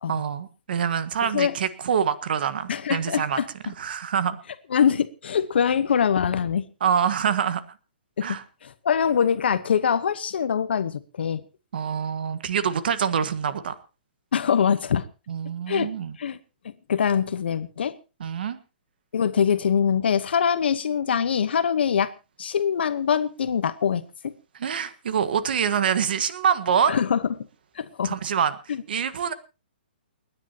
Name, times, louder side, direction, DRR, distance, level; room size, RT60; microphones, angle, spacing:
voice 1, 0.1-4.4 6.8-7.6 8.2-8.4 11.7-13.7 15.3-16.2 18.2-18.6 24.6-27.0 28.0-28.5 28.9-29.3, right 7 dB, 60° right, 12 dB, 1.5 m, -25 dB
voice 2, 1.2-1.5 2.7-3.5 4.7-6.6 8.2-8.3 8.6-11.4 14.3-15.0 15.7-15.9 16.2-16.4 16.9-17.9 19.1-22.1 22.4-24.3 26.9-27.2 27.8-28.1 28.7-28.8, left 7 dB, 70° left, 12 dB, 1.0 m, -23 dB
30.0 x 9.9 x 2.9 m, 0.30 s
hypercardioid pair, 170°, 6 cm